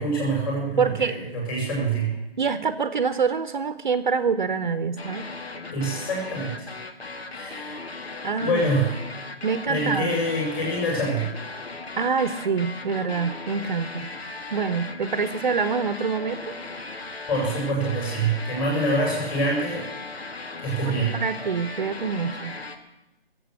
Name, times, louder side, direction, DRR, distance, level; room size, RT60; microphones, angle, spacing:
voice 1, 0.0-2.1 5.7-6.7 7.3-7.9 8.4-8.9 9.7-11.3 17.3-19.9 20.6-21.2, right 1 dB, 20° left, -2 dB, 5.9 m, -25 dB
voice 2, 0.8-1.2 2.4-5.3 8.2-8.7 9.4-10.2 12.0-14.1 14.5-16.4 20.8-22.5, right 5 dB, 50° right, 12 dB, 0.9 m, -26 dB
sound 1, 5.0-22.8, left 3 dB, 80° left, 1.9 m, -37 dB
19.5 x 8.0 x 7.7 m, 0.98 s
hypercardioid pair, 160°, 30 cm